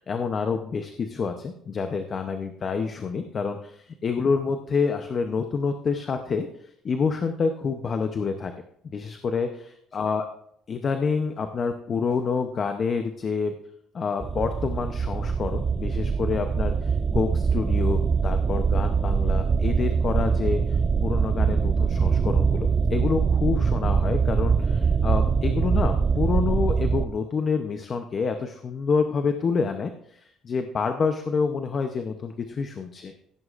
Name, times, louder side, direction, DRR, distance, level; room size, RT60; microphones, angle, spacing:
voice 1, 0.0-8.5 8.8-10.3 10.7-13.5 13.9-33.1, left 5 dB, 30° left, 6 dB, 0.7 m, -28 dB
sound 1, 14.2-27.1, right 5 dB, 25° right, 0.4 m, -23 dB
16.0 x 9.6 x 2.5 m, 0.70 s
cardioid pair, 150°, 0 cm